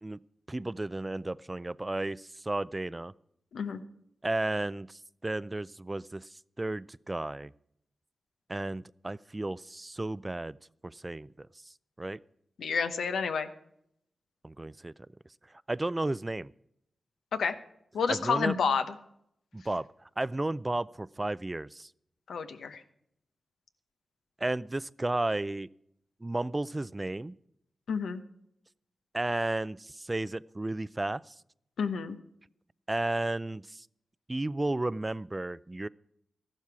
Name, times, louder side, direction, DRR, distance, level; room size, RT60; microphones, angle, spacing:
voice 1, 0.5-3.1 4.2-7.5 8.5-10.6 10.8-12.2 14.4-14.9 15.5-16.5 18.1-18.5 19.5-19.9 20.2-21.9 24.4-25.7 26.2-27.4 29.1-31.4 32.9-33.9 34.3-35.9, right 2 dB, 25° right, 19 dB, 0.4 m, -33 dB
voice 2, 12.6-13.5 17.3-17.5 17.9-18.9 22.3-22.8 27.9-28.2 31.8-32.2, left 6 dB, 90° left, 8 dB, 0.9 m, -29 dB
13.5 x 12.0 x 4.8 m, 0.74 s
cardioid pair, 55°, 0 cm